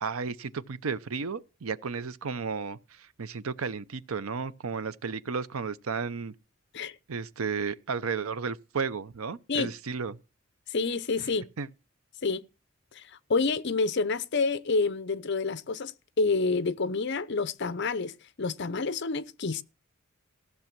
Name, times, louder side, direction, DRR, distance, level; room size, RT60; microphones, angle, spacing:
voice 1, 0.0-6.3 7.1-10.2 11.2-11.3 11.6-11.7, right 5 dB, 80° right, 0.7 m, -33 dB
voice 2, 10.7-11.5 12.2-12.4 12.9-18.1 18.4-19.6, left 4 dB, 55° left, 0.7 m, -28 dB
15.0 x 6.8 x 5.9 m
head